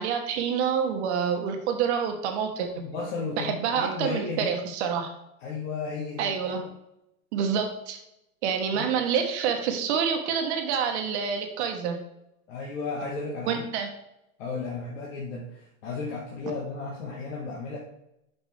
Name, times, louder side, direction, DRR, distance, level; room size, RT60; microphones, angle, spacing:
voice 1, 0.0-2.8 3.4-5.1 6.2-6.7 7.3-8.0 8.4-12.0 13.5-13.9, right 7 dB, 50° right, 4 dB, 1.3 m, -27 dB
voice 2, 2.8-4.5 5.4-6.3 8.7-8.9 12.5-13.7 14.4-17.8, left 4 dB, 60° left, -3 dB, 1.8 m, -34 dB
6.4 x 6.1 x 3.4 m, 0.84 s
hypercardioid pair, 130°, 43 cm